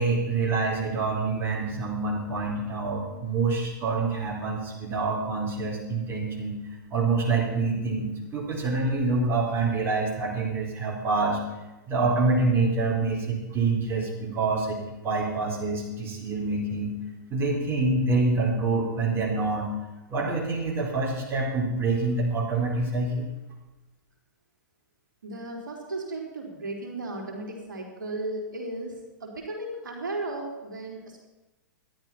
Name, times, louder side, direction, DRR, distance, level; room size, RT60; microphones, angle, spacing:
voice 1, 0.0-6.6 6.9-11.4 11.9-16.9 17.3-19.7 20.1-23.3, right 3 dB, 25° right, -3 dB, 4.2 m, -26 dB
voice 2, 25.2-28.9 29.2-31.3, right 2 dB, 80° right, -1 dB, 3.6 m, -35 dB
13.0 x 10.5 x 5.9 m, 1.0 s
hypercardioid pair, 115°, 10 cm